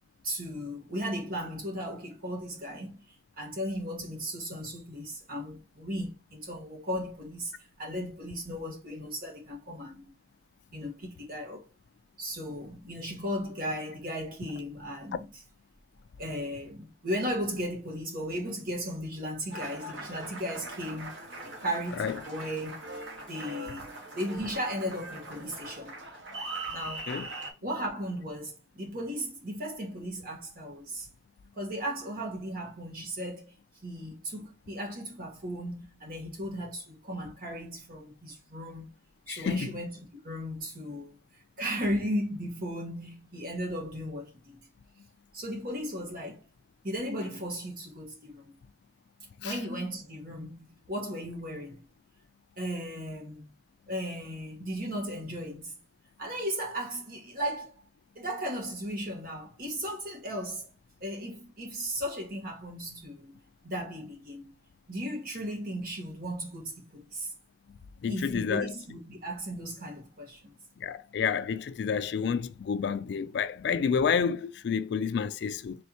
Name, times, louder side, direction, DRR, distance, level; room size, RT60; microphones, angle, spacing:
voice 1, 0.2-3.0 3.4-10.1 10.7-11.7 12.2-15.4 16.2-21.1 21.4-22.8 23.3-26.0 26.7-27.1 27.6-31.1 31.6-33.5 33.8-39.0 39.3-44.6 45.3-46.4 46.8-48.6 49.4-51.9 52.6-53.5 53.9-55.8 56.2-57.7 58.1-60.7 61.0-63.4 63.6-64.5 64.9-67.3 68.1-70.5, equal, 50° right, 1.4 m, -36 dB
Applause, 19.5-27.5, right 2 dB, 75° right, 1.3 m, -41 dB
voice 2, 39.3-39.7 49.4-49.5 68.0-68.7 70.8-75.8, left 6 dB, 60° left, 0.3 m, -29 dB
4.4 x 3.4 x 2.8 m
head